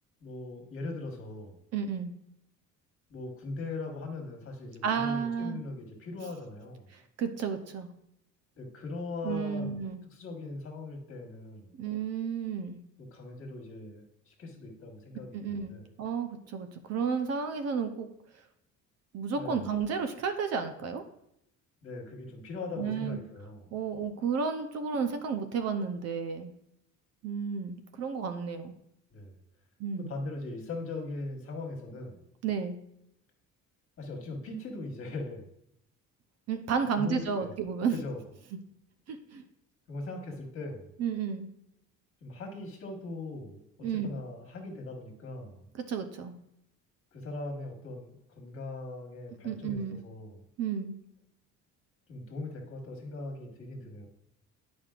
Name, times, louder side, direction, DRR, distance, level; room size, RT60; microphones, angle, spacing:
voice 1, 0.2-1.6 3.1-6.9 8.6-9.8 10.1-11.7 13.0-15.8 19.4-19.7 21.8-23.7 29.1-29.4 30.0-32.2 34.0-35.5 36.9-37.6 37.9-38.2 39.9-40.9 42.2-43.6 44.0-45.7 47.1-48.1 48.4-50.4 52.1-54.1, left 2 dB, 45° left, 1 dB, 1.6 m, -40 dB
voice 2, 1.7-2.1 4.8-5.6 7.2-7.9 9.2-10.0 11.8-12.8 15.3-15.7 16.0-18.1 19.1-21.0 22.8-23.2 23.7-26.5 27.2-28.7 29.8-30.1 32.4-32.8 36.5-38.0 39.1-39.4 41.0-41.5 43.8-44.2 45.9-46.4 49.4-50.0 50.6-50.9, right 6 dB, 55° right, 7 dB, 0.7 m, -32 dB
9.3 x 5.2 x 2.4 m, 0.77 s
cardioid pair, 150°, 31 cm